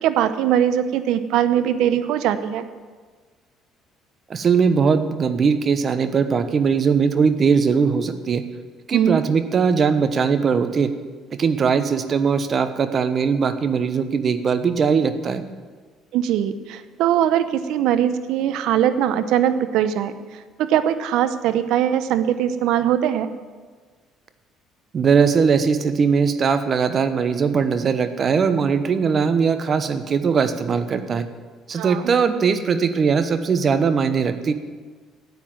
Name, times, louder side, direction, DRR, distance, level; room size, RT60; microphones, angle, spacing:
voice 1, 0.0-2.6 8.9-9.2 16.1-20.1 20.6-23.3 31.7-32.0, right 10 dB, 70° right, 11 dB, 0.8 m, -21 dB
voice 2, 4.3-8.4 8.9-10.9 11.4-15.4 24.9-31.3 31.7-34.5, right 6 dB, 45° right, 10 dB, 1.1 m, -20 dB
10.5 x 8.5 x 9.2 m, 1.5 s
hypercardioid pair, 65°, 0 cm